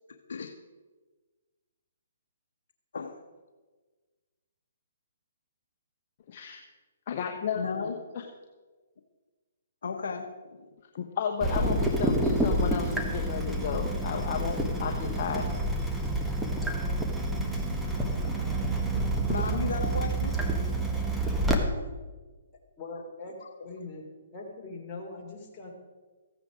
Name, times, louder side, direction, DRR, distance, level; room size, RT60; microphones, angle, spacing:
voice 1, 0.1-0.5 2.9-3.2 7.5-7.9 9.8-10.7 19.3-20.4 21.6-21.7 23.4-23.6, left 5 dB, 70° left, 5 dB, 1.0 m, -35 dB
voice 2, 6.3-6.6 7.1-8.2 11.0-15.5, left 7 dB, 45° left, 2 dB, 1.1 m, -33 dB
Water tap faucet / Drip, 11.4-21.6, right 1 dB, 5° right, 1.3 m, -28 dB
voice 3, 22.8-23.3 23.6-24.0 24.3-25.7, left 3 dB, 25° left, -3 dB, 3.1 m, -41 dB
15.0 x 9.1 x 5.0 m, 1.3 s
hypercardioid pair, 145°, 0 cm